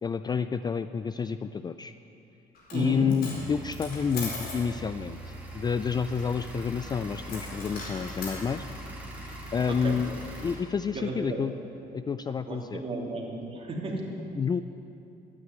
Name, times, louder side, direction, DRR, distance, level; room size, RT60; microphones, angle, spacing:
voice 1, 0.0-1.9 2.7-8.6 9.5-10.1 10.4-11.5 11.9-12.8 14.4-14.6, left 6 dB, 25° left, 11 dB, 0.4 m, -29 dB
Coin (dropping), 2.5-2.8 3.1-4.6 7.3-8.4, left 3 dB, 65° left, 4.5 m, -39 dB
voice 2, 2.7-3.1 9.7-10.0 10.9-11.4 12.5-14.0, right 2 dB, 35° right, -1 dB, 2.9 m, -34 dB
sound 1, 3.3-10.6, right 1 dB, 10° right, 3.3 m, -42 dB
12.5 x 9.7 x 9.5 m, 2.7 s
cardioid pair, 110°, 17 cm